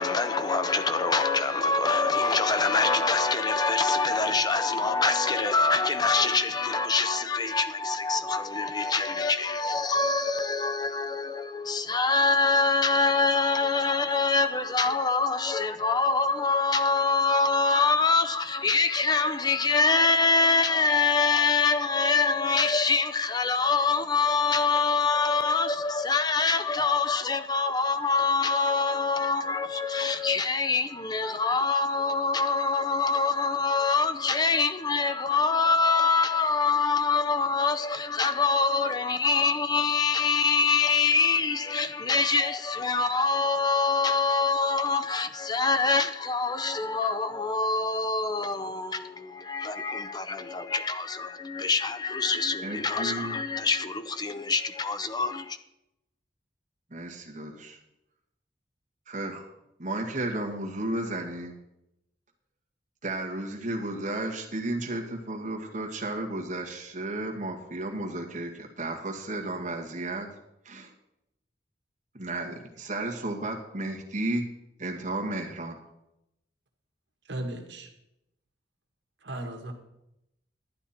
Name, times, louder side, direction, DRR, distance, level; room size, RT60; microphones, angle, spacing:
voice 1, 0.0-55.6, left 4 dB, 25° left, 0.5 m, -25 dB
voice 2, 52.6-53.4 56.9-57.8 59.1-59.5 59.8-61.6 63.0-70.3 70.6-70.9 72.1-74.5 74.8-75.8, right 2 dB, 45° right, 1.9 m, -33 dB
voice 3, 77.3-77.9 79.2-79.7, right 1 dB, 80° right, 1.7 m, -35 dB
12.0 x 10.5 x 4.3 m
head